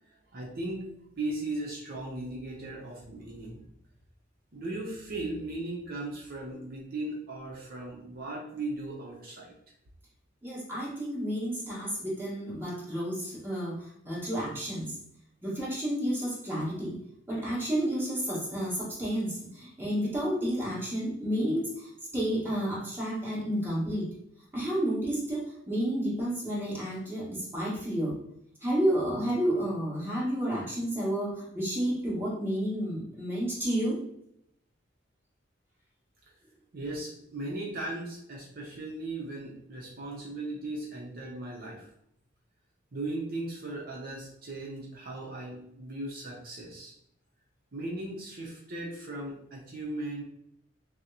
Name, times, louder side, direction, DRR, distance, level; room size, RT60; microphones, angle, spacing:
voice 1, 0.1-3.6 4.5-9.5 36.7-41.9 42.9-46.9 47.7-50.2, right 2 dB, 50° right, -2 dB, 0.7 m, -37 dB
voice 2, 10.4-14.9 15.4-16.9 17.3-24.1 24.5-28.1 28.6-34.0, equal, 10° right, -7 dB, 1.5 m, -31 dB
6.0 x 2.1 x 2.9 m, 0.74 s
head